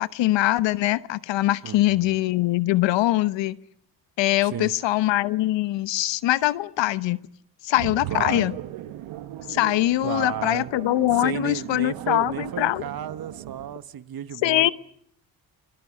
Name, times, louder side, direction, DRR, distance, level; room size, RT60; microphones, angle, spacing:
voice 1, 0.0-3.6 4.2-7.2 7.6-8.5 9.5-12.8 14.4-14.7, left 15 dB, 65° left, 1.0 m, -22 dB
voice 2, 1.6-2.1 4.4-4.7 8.1-8.5 10.0-10.7 11.1-14.7, right 10 dB, 45° right, 1.4 m, -33 dB
sound 1, 7.7-13.7, right 13 dB, 70° right, 1.7 m, -37 dB
29.0 x 22.5 x 6.4 m
hypercardioid pair, 60°, 48 cm